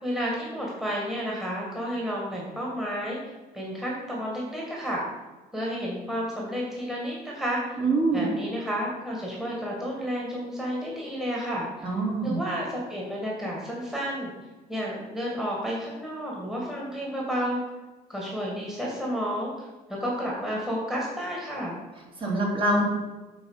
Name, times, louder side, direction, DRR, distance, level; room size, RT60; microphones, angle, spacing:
voice 1, 0.0-5.0 5.5-7.8 8.1-14.3 14.7-17.6 18.1-19.5 19.9-21.8, equal, 5° right, -4 dB, 1.8 m, -31 dB
voice 2, 7.8-8.3 11.8-12.4 22.2-22.8, right 2 dB, 30° right, -3 dB, 2.3 m, -24 dB
7.9 x 4.1 x 5.6 m, 1.2 s
cardioid pair, 110°, 17 cm